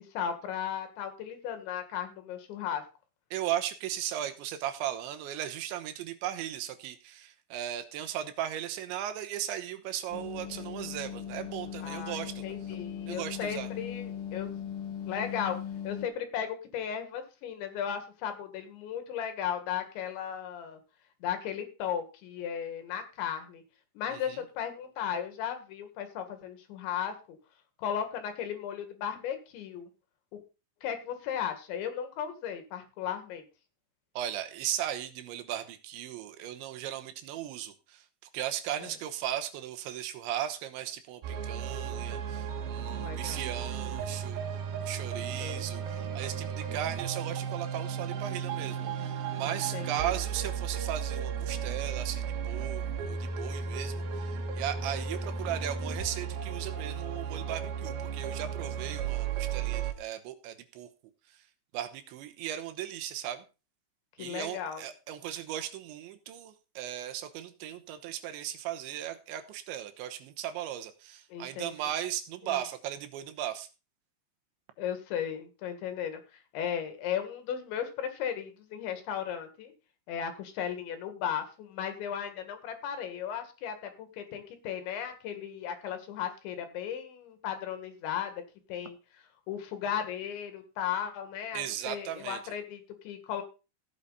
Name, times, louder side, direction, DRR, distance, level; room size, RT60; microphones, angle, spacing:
voice 1, 0.0-2.8 11.8-14.5 15.1-20.8 21.2-23.6 24.0-27.4 27.8-29.9 30.8-33.5 38.8-38.9 43.0-43.4 45.4-45.6 46.7-46.8 49.4-50.2 64.2-64.8 71.3-71.7 72.5-72.6 74.8-76.2 76.5-79.7 80.1-88.4 88.7-89.0 89.5-93.4, left 9 dB, 75° left, 8 dB, 4.2 m, -36 dB
voice 2, 3.3-12.8 13.1-13.7 24.1-24.4 34.2-60.9 61.3-61.4 61.7-63.4 64.2-73.7 91.5-92.4, right 11 dB, 85° right, 8 dB, 3.4 m, -37 dB
sound 1, 10.1-16.1, left 9 dB, 50° left, 2.5 m, -39 dB
sound 2, 41.2-59.9, right 7 dB, 65° right, 3.2 m, -34 dB
15.5 x 8.6 x 4.1 m, 0.31 s
omnidirectional pair, 5.3 m